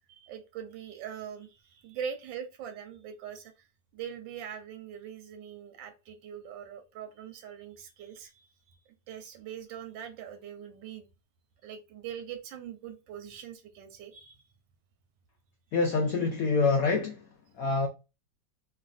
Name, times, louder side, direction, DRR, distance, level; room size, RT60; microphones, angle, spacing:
voice 1, 0.1-3.7 3.9-11.1 11.6-14.5, right 8 dB, 90° right, 1.3 m, -42 dB
voice 2, 15.7-17.2 17.6-17.9, left 4 dB, 75° left, 0.8 m, -26 dB
3.2 x 2.5 x 2.5 m
omnidirectional pair, 2.0 m